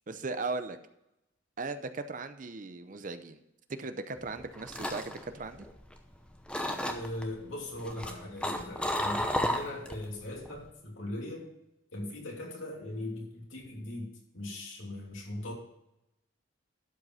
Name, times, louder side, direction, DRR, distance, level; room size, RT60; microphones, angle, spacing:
voice 1, 0.1-0.8 1.6-3.4 3.8-5.7, right 3 dB, 40° right, 10 dB, 0.6 m, -37 dB
sound 1, 4.3-6.1 6.5-7.2 7.8-10.0 10.4-10.7, left 1 dB, 5° left, 0.7 m, -32 dB
voice 2, 6.9-11.5 11.9-15.5, left 1 dB, 80° left, -2 dB, 3.1 m, -39 dB
12.0 x 5.3 x 5.5 m, 0.85 s
head